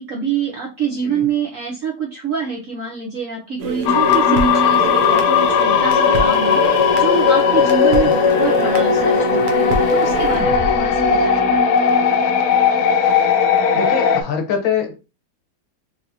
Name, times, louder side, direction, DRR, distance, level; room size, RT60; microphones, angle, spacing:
voice 1, 0.0-11.6, right 6 dB, 65° right, -1 dB, 0.8 m, -26 dB
sound 1, 3.6-11.6, right 3 dB, 85° right, 1.6 m, -26 dB
sound 2, 3.9-14.2, left 6 dB, 85° left, 0.8 m, -16 dB
voice 2, 13.7-15.0, left 8 dB, 70° left, 4 dB, 1.6 m, -23 dB
4.7 x 2.9 x 2.7 m, 0.29 s
omnidirectional pair, 2.3 m